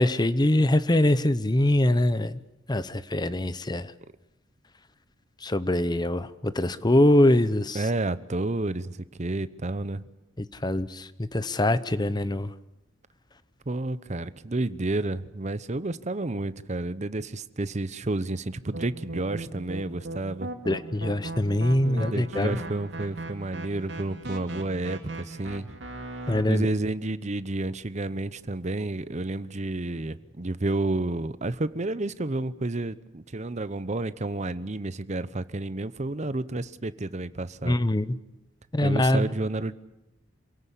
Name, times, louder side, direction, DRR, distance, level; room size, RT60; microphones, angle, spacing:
voice 1, 0.0-2.4 2.7-3.9 5.4-7.8 10.6-12.5 20.7-22.6 26.3-26.7 37.6-38.2 38.7-39.3, left 1 dB, 20° left, 14 dB, 0.8 m, -23 dB
voice 2, 7.7-10.0 13.7-20.5 21.8-25.7 26.5-37.8 38.8-39.7, right 2 dB, 35° right, 15 dB, 0.8 m, -30 dB
sound 1, 18.7-26.4, right 2 dB, 65° right, 2.7 m, -38 dB
27.0 x 17.0 x 8.4 m, 0.95 s
head